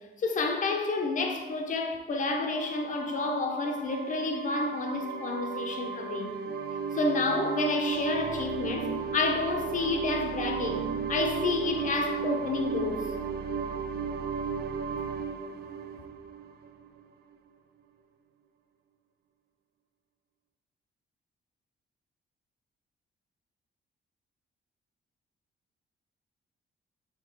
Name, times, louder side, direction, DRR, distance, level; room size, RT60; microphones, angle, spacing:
voice 1, 0.2-6.4 6.9-13.1, left 3 dB, 40° left, 0.8 m, -30 dB
sound 1, 2.5-17.0, right 6 dB, 55° right, 0.5 m, -35 dB
8.1 x 3.9 x 4.5 m
wide cardioid pair, 175°, 20 cm